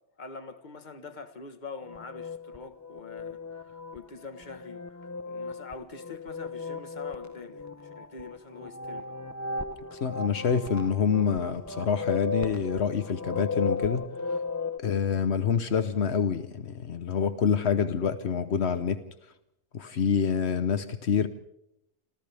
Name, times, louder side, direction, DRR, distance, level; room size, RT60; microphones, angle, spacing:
voice 1, 0.2-9.1, left 4 dB, 45° left, 1.5 m, -44 dB
sound 1, 1.8-14.8, left 3 dB, 20° left, 0.7 m, -36 dB
voice 2, 9.9-14.0 14.8-19.0 19.7-21.3, left 7 dB, 80° left, 1.2 m, -26 dB
28.5 x 26.5 x 3.5 m
omnidirectional pair, 1.1 m